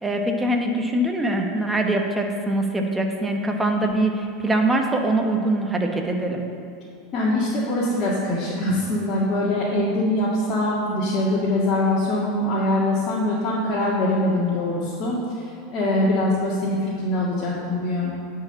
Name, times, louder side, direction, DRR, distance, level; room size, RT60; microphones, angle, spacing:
voice 1, 0.0-6.5, right 1 dB, 10° right, 2 dB, 1.3 m, -23 dB
voice 2, 7.1-18.1, left 1 dB, 40° left, -8 dB, 2.2 m, -23 dB
10.5 x 4.9 x 7.1 m, 2.5 s
hypercardioid pair, 95°, 0 cm